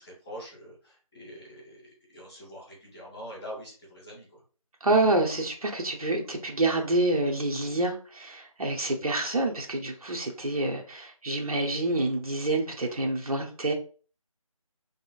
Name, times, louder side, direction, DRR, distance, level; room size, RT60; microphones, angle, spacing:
voice 1, 0.0-4.4, equal, 5° left, -18 dB, 0.5 m, -44 dB
voice 2, 4.8-13.7, right 2 dB, 80° right, 1 dB, 0.8 m, -27 dB
2.9 x 2.7 x 2.4 m, 0.39 s
figure-of-eight pair, 165°, 18 cm